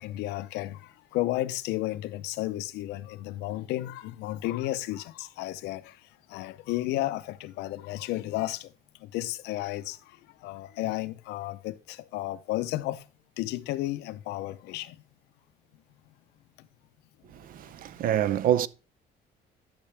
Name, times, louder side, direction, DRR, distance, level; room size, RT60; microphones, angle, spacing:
voice 1, 0.0-13.0 13.4-15.0 16.6-16.7, left 16 dB, 90° left, 0.6 m, -33 dB
voice 2, 17.3-18.7, right 11 dB, 55° right, 0.5 m, -26 dB
12.0 x 5.9 x 3.3 m
cardioid pair, 110°, 17 cm